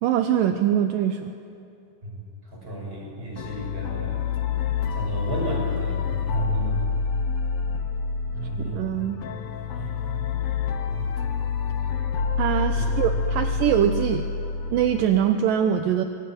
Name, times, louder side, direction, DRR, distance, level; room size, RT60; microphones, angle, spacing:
voice 1, 0.0-1.3 8.7-9.2 12.4-14.3 14.7-16.0, right 9 dB, 75° right, 7 dB, 2.4 m, -23 dB
voice 2, 2.0-4.2 4.9-6.8 8.3-8.8 9.7-10.3 10.9-11.1 12.8-13.4, right 2 dB, 15° right, -1 dB, 6.4 m, -34 dB
sound 1, 3.4-15.1, left 5 dB, 60° left, 1.5 m, -27 dB
25.5 x 20.5 x 9.5 m, 2.5 s
omnidirectional pair, 4.1 m